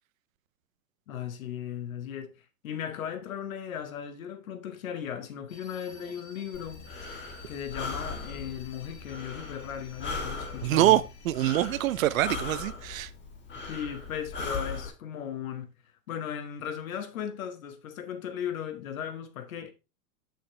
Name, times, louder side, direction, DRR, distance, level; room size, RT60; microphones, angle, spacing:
voice 1, 1.1-2.4 2.6-6.9 7.5-11.0 13.5-15.7 16.1-19.7, left 8 dB, 70° left, 1.4 m, -37 dB
sound 1, 5.5-12.3, left 4 dB, 45° left, 2.2 m, -53 dB
Breathing, 6.5-14.9, left 4 dB, 25° left, 1.8 m, -39 dB
voice 2, 10.6-13.1, right 14 dB, 65° right, 0.7 m, -25 dB
6.7 x 6.3 x 3.3 m
hypercardioid pair, 110°, 43 cm